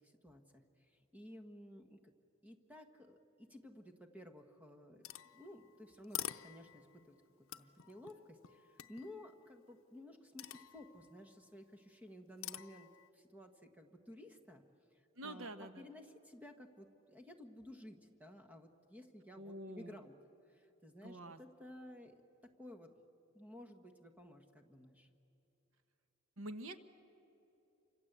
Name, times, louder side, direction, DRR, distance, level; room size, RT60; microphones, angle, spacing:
voice 1, 0.0-2.1 2.4-7.2 7.5-14.6 14.9-15.5 15.8-20.1 20.5-22.2 22.6-22.9 23.3-25.1, left 1 dB, 10° right, 5 dB, 1.4 m, -55 dB
sound 1, 5.0-7.0 7.5-9.3 10.4-11.3 12.4-13.1, left 12 dB, 75° left, 0.7 m, -48 dB
voice 2, 15.1-15.9 19.4-20.0 21.0-21.4 26.4-26.8, right 1 dB, 75° right, 10 dB, 1.2 m, -47 dB
29.0 x 25.5 x 8.1 m, 3.0 s
head